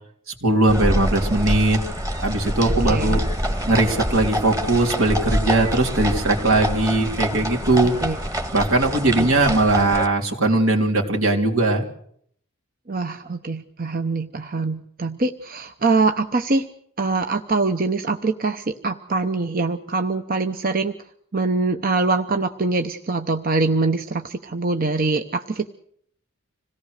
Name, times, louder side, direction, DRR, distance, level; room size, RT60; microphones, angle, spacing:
voice 1, 0.4-1.8 2.2-3.2 3.7-7.9 8.5-11.8, right 2 dB, 75° right, 1 dB, 3.4 m, -19 dB
sound 1, 0.7-10.1, equal, 15° right, 1.8 m, -26 dB
voice 2, 2.8-3.2 8.0-8.2 9.2-9.3 12.9-16.7 17.0-20.9 21.3-25.7, right 3 dB, 45° right, 7 dB, 0.9 m, -23 dB
26.5 x 18.0 x 6.6 m, 0.66 s
head